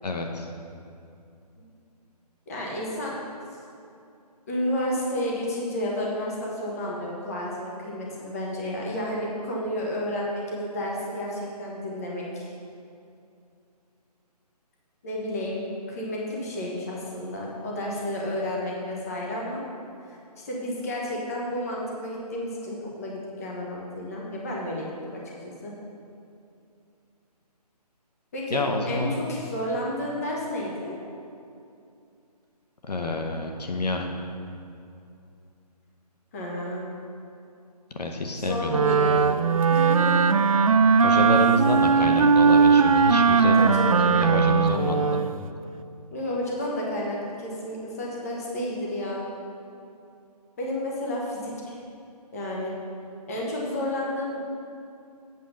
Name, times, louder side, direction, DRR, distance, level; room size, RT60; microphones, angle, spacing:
voice 1, 0.0-0.5 28.5-29.2 32.9-34.1 38.0-39.3 41.0-43.6 44.0-45.2, left 2 dB, 75° left, 3 dB, 1.1 m, -28 dB
voice 2, 2.5-3.2 4.5-12.5 15.0-19.6 20.1-20.2 20.5-25.7 28.3-30.9 36.3-36.9 38.4-39.3 39.7-40.2 43.5-44.0 46.1-49.3 50.6-51.7 52.3-52.7 53.3-54.4, left 1 dB, 25° left, -3 dB, 1.2 m, -31 dB
Wind instrument woodwind instrument, 38.7-45.4, right 5 dB, 55° right, 0.4 m, -19 dB
8.3 x 7.4 x 5.2 m, 2.6 s
hypercardioid pair, 170°, 21 cm